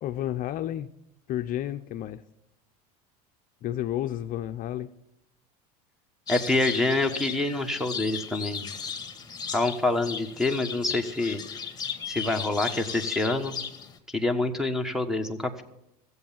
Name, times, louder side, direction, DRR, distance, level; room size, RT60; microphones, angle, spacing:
voice 1, 0.0-0.9 1.3-2.2 3.6-4.9, left 12 dB, 45° left, 8 dB, 0.6 m, -31 dB
sound 1, 6.3-14.0, left 7 dB, 20° left, 1.8 m, -36 dB
voice 2, 6.3-8.6 9.5-11.4 12.0-13.6 14.1-15.6, left 2 dB, ahead, 9 dB, 1.4 m, -26 dB
15.0 x 8.1 x 7.3 m, 0.84 s
supercardioid pair, 115°, 20 cm